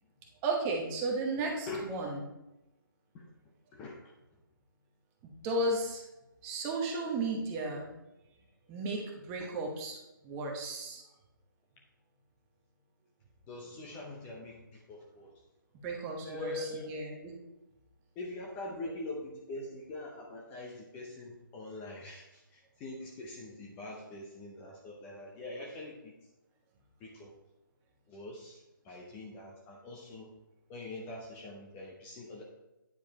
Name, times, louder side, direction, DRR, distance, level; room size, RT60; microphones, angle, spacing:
voice 1, 0.4-2.2 5.2-6.0 6.4-7.8 8.7-10.0 10.2-11.0 15.8-16.5 16.8-17.3, right 2 dB, 15° right, 1 dB, 1.0 m, -34 dB
voice 2, 13.5-15.3 16.2-16.9 18.1-26.3 27.0-27.3 28.1-30.3 30.7-32.4, left 2 dB, 15° left, -1 dB, 0.7 m, -43 dB
9.4 x 4.9 x 4.1 m, 0.97 s
figure-of-eight pair, 155°, 12 cm